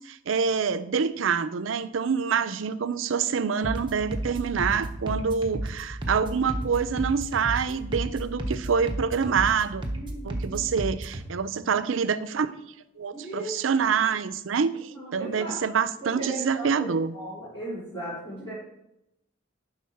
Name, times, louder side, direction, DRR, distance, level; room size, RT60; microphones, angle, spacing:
voice 1, 0.0-9.8 10.2-12.5 13.0-17.1, right 6 dB, 90° right, 14 dB, 0.5 m, -26 dB
sound 1, 3.6-11.2, right 1 dB, 25° right, 1.0 m, -33 dB
voice 2, 9.7-10.6 11.2-11.8 13.1-13.5 14.7-15.6 16.0-18.5, right 1 dB, 15° left, -12 dB, 3.3 m, -38 dB
11.0 x 3.7 x 5.9 m, 0.83 s
head